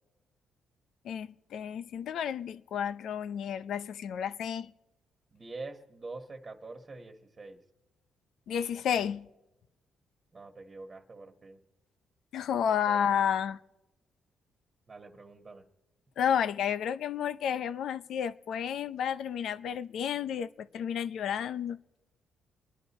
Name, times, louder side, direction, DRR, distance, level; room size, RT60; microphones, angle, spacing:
voice 1, 1.0-4.7 8.5-9.3 12.3-13.6 16.2-21.8, left 8 dB, 70° left, 0.6 m, -31 dB
voice 2, 5.3-7.6 10.3-11.6 12.7-13.2 14.9-15.6, right 3 dB, 30° right, 1.6 m, -45 dB
28.5 x 11.0 x 4.3 m
cardioid pair, 90°, 0 cm